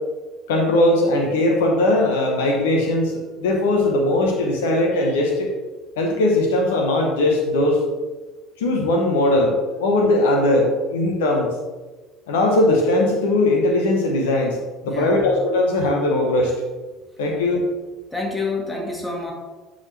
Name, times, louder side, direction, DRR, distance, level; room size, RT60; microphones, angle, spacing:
voice 1, 0.5-5.5 6.0-7.8 8.6-11.5 12.3-14.6 14.8-16.5 17.2-17.6, left 1 dB, 75° left, 1 dB, 0.9 m, -19 dB
voice 2, 14.9-15.3 17.2-17.4 18.1-19.3, left 2 dB, 10° left, -1 dB, 2.1 m, -28 dB
9.7 x 4.0 x 3.2 m, 1.3 s
hypercardioid pair, 65°, 0 cm